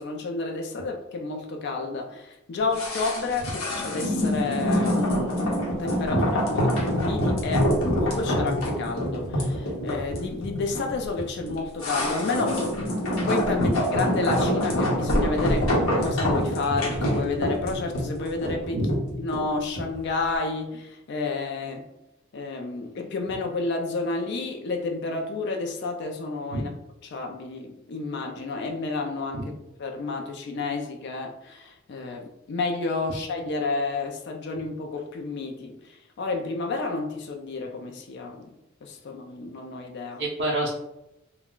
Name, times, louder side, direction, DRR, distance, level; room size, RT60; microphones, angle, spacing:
voice 1, 0.0-12.6 13.3-15.7 16.0-18.8 19.1-21.8 22.3-26.7 27.0-29.5 29.8-38.5 38.8-40.2, left 3 dB, 55° left, 3 dB, 0.4 m, -30 dB
sound 1, 2.7-20.0 20.3-20.4, equal, 85° left, 0.9 m, -26 dB
voice 2, 40.2-40.7, right 1 dB, 55° right, -3 dB, 0.5 m, -27 dB
2.3 x 2.1 x 3.6 m, 0.87 s
head